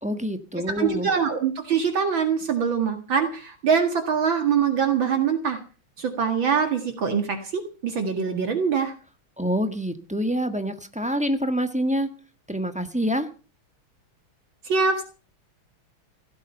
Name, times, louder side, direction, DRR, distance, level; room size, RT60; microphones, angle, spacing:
voice 1, 0.0-1.1 9.4-12.1 12.5-13.3, equal, 5° right, 8 dB, 1.1 m, -26 dB
voice 2, 0.8-5.6 6.0-8.9 14.6-15.0, right 6 dB, 65° right, 5 dB, 2.6 m, -23 dB
16.5 x 13.5 x 5.6 m, 0.37 s
omnidirectional pair, 2.4 m